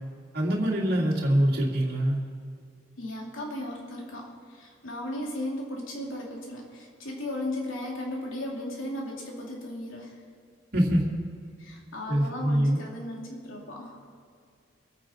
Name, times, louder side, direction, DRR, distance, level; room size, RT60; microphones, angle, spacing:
voice 1, 0.3-2.2 10.7-11.1 12.1-12.8, equal, 50° right, -3 dB, 2.6 m, -24 dB
voice 2, 3.0-10.2 11.6-14.0, left 1 dB, 75° left, -2 dB, 3.0 m, -36 dB
24.0 x 8.8 x 4.5 m, 2.3 s
head